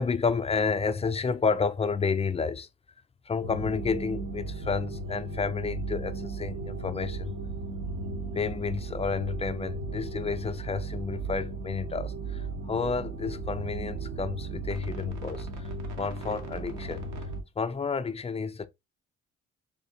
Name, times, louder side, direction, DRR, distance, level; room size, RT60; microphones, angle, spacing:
voice 1, 0.0-2.7 3.3-7.3 8.3-17.3 17.6-18.7, left 5 dB, 20° left, 0.3 m, -30 dB
sound 1, 3.4-17.4, right 3 dB, 70° right, 1.0 m, -36 dB
3.7 x 2.6 x 2.7 m
cardioid pair, 90°, 30 cm